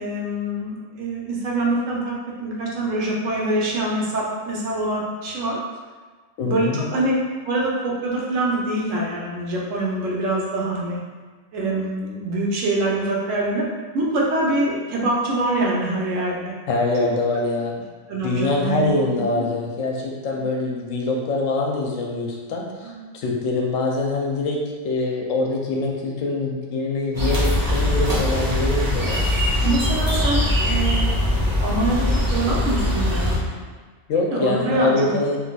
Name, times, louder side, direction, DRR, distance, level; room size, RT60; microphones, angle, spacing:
voice 1, 0.0-5.6 6.4-7.1 7.4-11.0 11.5-13.6 13.9-16.5 18.1-19.4 20.3-20.4 22.8-22.9 29.6-31.3 31.6-32.0 32.3-33.6 34.3-35.2, right 2 dB, 75° right, -4 dB, 1.1 m, -24 dB
voice 2, 6.4-6.9 16.7-17.7 18.2-24.6 24.8-29.5 34.1-35.4, left 3 dB, 75° left, -1 dB, 0.9 m, -24 dB
sound 1, 27.1-33.4, left 1 dB, 20° right, 0.7 m, -21 dB
3.9 x 2.6 x 2.3 m, 1.4 s
omnidirectional pair, 1.4 m